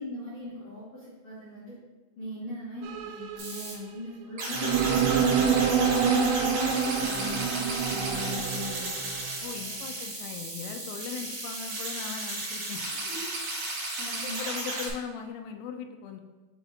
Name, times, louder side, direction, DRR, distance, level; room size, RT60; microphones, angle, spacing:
voice 1, 0.0-1.8 2.2-5.6 6.0-9.2 12.4-12.6 13.0-13.2 13.6-14.5, left 2 dB, 55° left, -12 dB, 1.9 m, -40 dB
sound 1, 2.8-4.0 4.6-9.3, right 7 dB, 85° right, 3.0 m, -27 dB
sound 2, 3.4-3.7 4.4-14.9, right 2 dB, 60° right, 2.0 m, -34 dB
voice 2, 9.4-12.9 14.2-16.2, left 7 dB, 80° left, 4 dB, 2.8 m, -39 dB
6.9 x 5.0 x 2.8 m, 1.2 s
omnidirectional pair, 5.9 m